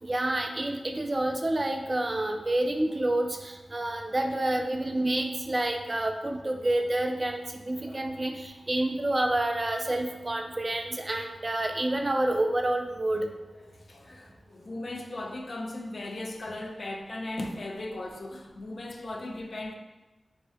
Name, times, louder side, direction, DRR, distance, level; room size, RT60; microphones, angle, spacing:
voice 1, 0.0-13.3, right 1 dB, 35° right, 0.3 m, -28 dB
voice 2, 2.1-2.4 3.8-4.2 7.7-8.2 13.5-19.7, left 2 dB, 60° left, 0.3 m, -38 dB
2.7 x 2.1 x 3.4 m
cardioid pair, 55°, 0 cm